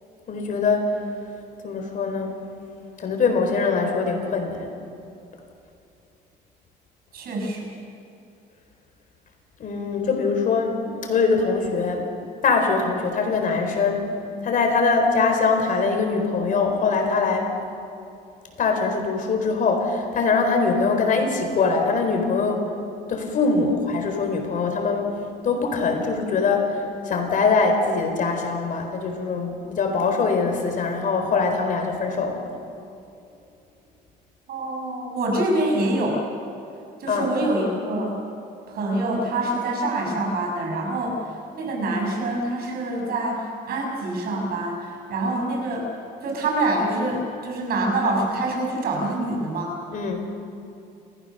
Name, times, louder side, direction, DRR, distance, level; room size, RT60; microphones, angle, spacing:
voice 1, 0.3-1.0 1.6-2.4 3.0-4.8 9.6-12.1 12.4-14.1 14.4-17.5 18.6-22.7 23.1-25.1 25.4-32.5 37.1-37.3 49.9-50.3, left 4 dB, 50° left, 4 dB, 4.1 m, -23 dB
voice 2, 7.1-7.7 34.5-36.2 37.0-38.1 38.7-45.9 46.2-49.7, right 2 dB, 65° right, 1 dB, 6.4 m, -25 dB
30.0 x 15.0 x 6.7 m, 2.6 s
cardioid pair, 110°, 17 cm